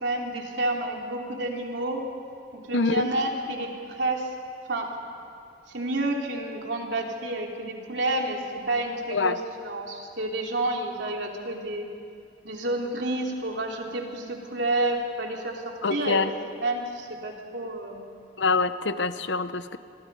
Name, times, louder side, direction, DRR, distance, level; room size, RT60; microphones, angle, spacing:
voice 1, 0.0-2.0 2.5-4.3 4.7-4.9 5.7-11.9 12.4-16.2 16.5-18.0, right 2 dB, 85° right, 1 dB, 3.1 m, -30 dB
voice 2, 2.7-3.1 9.1-9.4 15.8-16.3 18.4-19.8, left 4 dB, 90° left, 12 dB, 0.9 m, -25 dB
27.0 x 22.0 x 5.5 m, 2.4 s
head